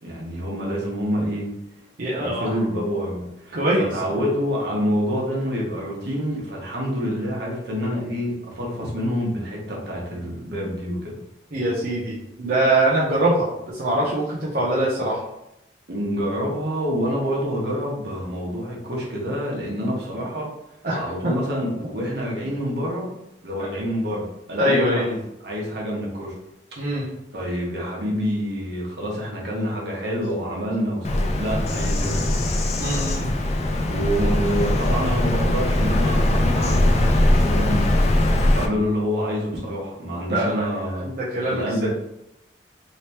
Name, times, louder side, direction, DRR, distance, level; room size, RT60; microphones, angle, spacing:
voice 1, 0.0-1.5 2.2-11.2 15.9-20.5 20.9-23.1 23.4-26.3 26.9-32.5 33.9-41.1 41.4-41.9, equal, 70° right, -3 dB, 1.2 m, -27 dB
voice 2, 2.0-2.5 3.5-3.9 11.5-15.2 20.8-21.3 24.6-25.1 26.8-27.1 32.8-33.3 37.6-37.7 40.3-40.7 40.9-41.9, right 1 dB, 55° right, -7 dB, 0.6 m, -23 dB
Bird vocalization bird call bird song, 31.0-38.7, left 1 dB, 35° left, 0.4 m, -21 dB
3.3 x 3.0 x 2.9 m, 0.85 s
head